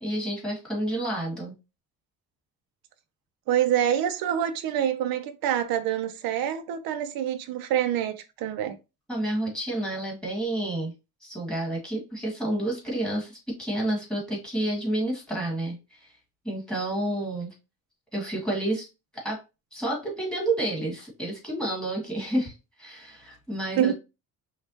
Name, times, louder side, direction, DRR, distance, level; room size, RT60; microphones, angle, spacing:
voice 1, 0.0-1.5 9.1-10.9 11.2-16.1 16.4-17.5 18.1-18.9 19.1-19.4 19.7-23.9, right 1 dB, ahead, 1.7 m, -30 dB
voice 2, 3.5-8.8 23.8-23.9, right 10 dB, 75° right, 0.6 m, -26 dB
5.5 x 2.3 x 2.7 m
cardioid pair, 135°, 36 cm